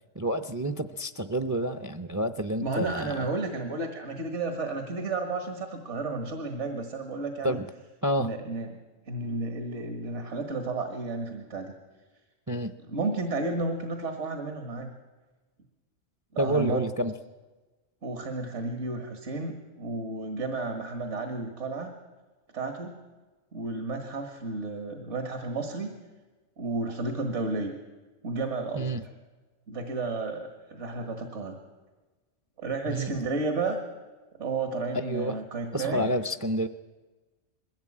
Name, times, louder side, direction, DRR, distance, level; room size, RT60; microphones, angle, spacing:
voice 1, 0.2-3.1 7.4-7.7 8.0-8.3 12.5-12.7 16.4-17.1 28.8-29.0 32.9-33.1 35.1-35.4 35.7-36.7, right 1 dB, 20° right, 9 dB, 0.5 m, -29 dB
voice 2, 2.6-7.6 8.2-8.7 9.1-11.7 12.9-14.9 16.3-16.9 18.0-21.9 22.5-23.0 23.5-25.9 26.6-27.7 28.2-28.9 29.7-31.6 32.6-33.8 34.4-36.1, right 3 dB, 70° right, 5 dB, 2.1 m, -32 dB
21.5 x 16.0 x 8.7 m, 1.3 s
omnidirectional pair, 1.2 m